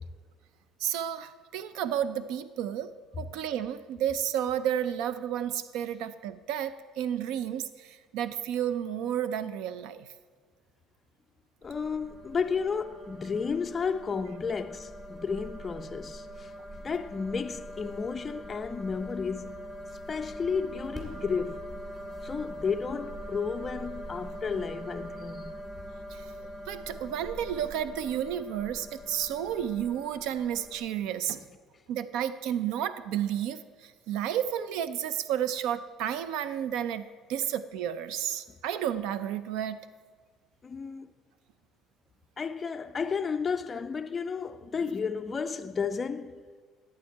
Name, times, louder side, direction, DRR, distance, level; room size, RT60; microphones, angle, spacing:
voice 1, 0.8-10.1 26.1-26.3 26.7-31.4 31.9-39.8, right 10 dB, 80° right, 0.5 m, -32 dB
voice 2, 11.6-16.5 16.8-19.7 20.1-21.6 22.2-25.6 40.6-41.1 42.4-46.4, left 5 dB, 25° left, 0.3 m, -32 dB
sound 1, 11.6-30.8, equal, 10° right, 2.2 m, -43 dB
11.5 x 8.4 x 4.6 m
cardioid pair, 135°, 0 cm